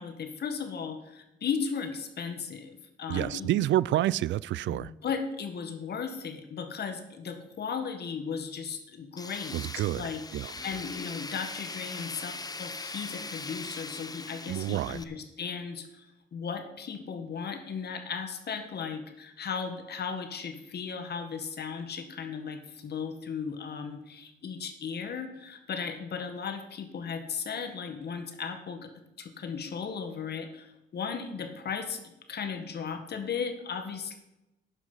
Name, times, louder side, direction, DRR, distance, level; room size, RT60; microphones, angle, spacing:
voice 1, 0.0-3.5 4.7-9.6 9.9-16.1 16.3-28.9 29.2-34.2, left 6 dB, 55° left, 1.9 m, -36 dB
voice 2, 3.1-4.9 9.5-10.5 14.5-15.0, right 14 dB, 70° right, 0.4 m, -28 dB
Tools, 9.2-15.0, left 3 dB, 20° left, 0.8 m, -40 dB
11.5 x 9.3 x 5.7 m
cardioid pair, 90°, 20 cm